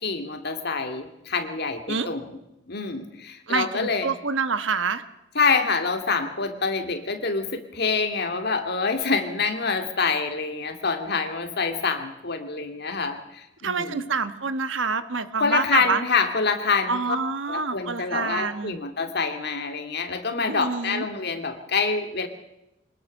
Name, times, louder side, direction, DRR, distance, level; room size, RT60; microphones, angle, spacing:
voice 1, 0.0-2.3 2.7-4.1 5.4-14.1 15.4-17.0 17.5-22.3, left 4 dB, 55° left, 6 dB, 2.3 m, -26 dB
voice 2, 3.5-5.0 13.6-16.0 16.9-18.8 20.5-21.1, right 4 dB, 75° right, 12 dB, 1.3 m, -27 dB
23.5 x 19.5 x 6.5 m, 0.91 s
head